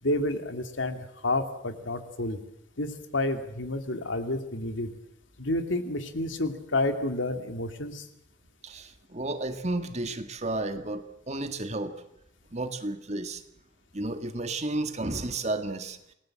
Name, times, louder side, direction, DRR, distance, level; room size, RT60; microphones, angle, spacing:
voice 1, 0.0-2.4 2.8-4.9 5.4-8.1, left 2 dB, 80° left, 7 dB, 2.5 m, -30 dB
voice 2, 8.6-12.0 12.5-13.4 13.9-16.0, right 2 dB, 35° right, 8 dB, 1.8 m, -32 dB
28.0 x 19.5 x 7.6 m, 0.80 s
head